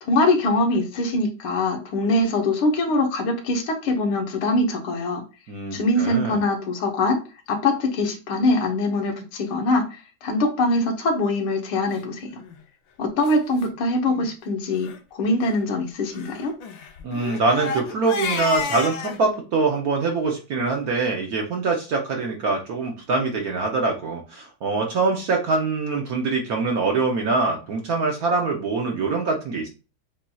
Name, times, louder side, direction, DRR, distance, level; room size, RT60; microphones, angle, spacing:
voice 1, 0.0-5.2 5.7-7.2 7.5-12.3 13.0-14.9 15.1-16.5, left 2 dB, 85° left, 4 dB, 1.8 m, -23 dB
voice 2, 5.5-6.4 17.0-29.7, right 3 dB, 60° right, 1 dB, 1.0 m, -24 dB
Crying sobbing, 12.3-12.6 13.2-13.3 13.6-13.7 14.1-14.3 14.7-15.0 16.1-19.2, left 5 dB, 70° left, 1.4 m, -31 dB
7.2 x 2.7 x 2.3 m, 0.32 s
omnidirectional pair, 2.3 m